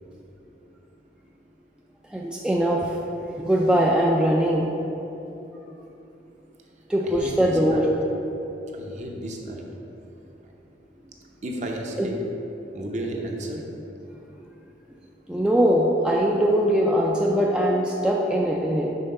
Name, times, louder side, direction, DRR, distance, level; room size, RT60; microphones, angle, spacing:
voice 1, 2.1-3.0 3.4-4.7 6.9-7.9 12.0-12.1 15.3-18.9, equal, 5° right, -3 dB, 0.3 m, -21 dB
voice 2, 7.0-7.8 8.7-9.7 11.4-12.2 12.7-13.6, right 1 dB, 40° right, 0 dB, 0.7 m, -33 dB
5.6 x 3.8 x 5.3 m, 3.0 s
head